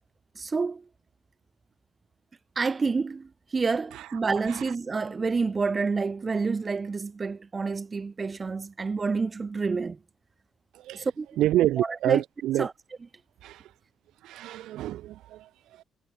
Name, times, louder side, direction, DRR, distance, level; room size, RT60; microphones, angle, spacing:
voice 1, 0.3-0.9 2.5-10.0 10.9-11.3 11.8-12.2 12.6-12.7, right 4 dB, 30° right, 3.5 m, -28 dB
voice 2, 10.7-11.1 11.4-12.7 13.4-13.7 14.2-15.8, right 14 dB, 85° right, 2.7 m, -28 dB
cardioid pair, 90°, 0 cm